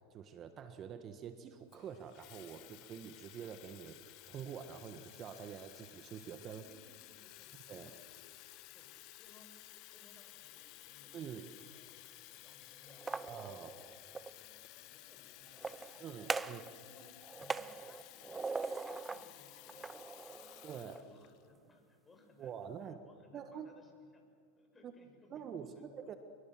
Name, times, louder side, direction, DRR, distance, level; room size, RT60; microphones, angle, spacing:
voice 1, 0.1-6.6 7.7-7.9 11.1-11.5 13.3-13.7 16.0-16.6 20.6-21.0 22.4-23.0 23.3-23.7 24.8-24.9 25.3-26.2, right 8 dB, 35° right, 8 dB, 1.5 m, -46 dB
Water tap faucet / Fill (with liquid), 1.7-21.5, left 16 dB, 55° left, 1.6 m, -55 dB
voice 2, 6.5-8.2 8.7-17.1 17.3-26.2, left 2 dB, 20° left, 4 dB, 6.3 m, -65 dB
sound 1, 12.9-14.3 15.5-16.7 17.0-19.3 19.7-21.0, right 4 dB, 15° right, 0.8 m, -41 dB
28.0 x 23.0 x 7.6 m, 2.2 s
hypercardioid pair, 100°, 0 cm